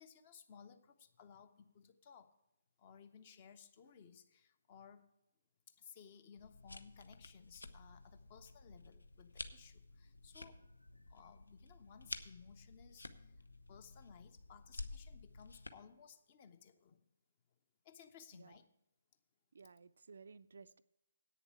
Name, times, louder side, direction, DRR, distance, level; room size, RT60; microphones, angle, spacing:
voice 1, 0.0-2.4 2.8-5.1 5.7-10.7 11.1-13.3 13.7-17.0 17.8-18.7, left 7 dB, 30° left, 11 dB, 0.8 m, -59 dB
sound 1, 6.4-15.7, left 2 dB, 70° left, 0.7 m, -52 dB
voice 2, 19.5-20.8, right 5 dB, 55° right, 14 dB, 0.4 m, -57 dB
8.6 x 7.0 x 8.4 m, 0.91 s
figure-of-eight pair, 140°, 0 cm